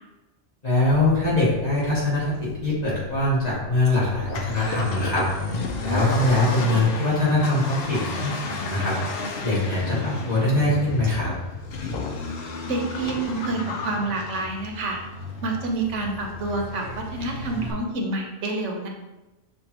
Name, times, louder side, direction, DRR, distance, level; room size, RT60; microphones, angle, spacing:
voice 1, 0.6-5.3 5.8-8.9 9.4-11.3, left 2 dB, 35° left, -8 dB, 1.4 m, -22 dB
sound 1, 0.9-6.3, left 1 dB, 85° left, 1.0 m, -39 dB
Accelerating revving vroom, 4.2-17.7, left 3 dB, 60° left, 0.7 m, -32 dB
voice 2, 12.6-15.0 15.4-18.9, right 2 dB, 80° right, 1 dB, 1.1 m, -28 dB
6.5 x 2.4 x 2.8 m, 1.1 s
omnidirectional pair, 1.2 m